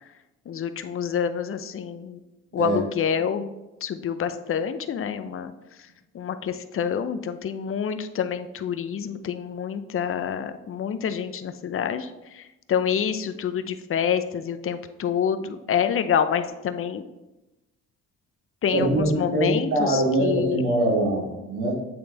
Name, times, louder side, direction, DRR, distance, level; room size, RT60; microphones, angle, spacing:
voice 1, 0.5-2.2 2.5-3.5 3.8-5.5 6.1-12.4 12.7-17.0 18.6-20.6, left 8 dB, 45° left, 10 dB, 0.6 m, -27 dB
voice 2, 18.7-21.7, right 1 dB, 85° right, -2 dB, 2.3 m, -23 dB
8.6 x 3.9 x 3.4 m, 0.98 s
cardioid pair, 90°, 30 cm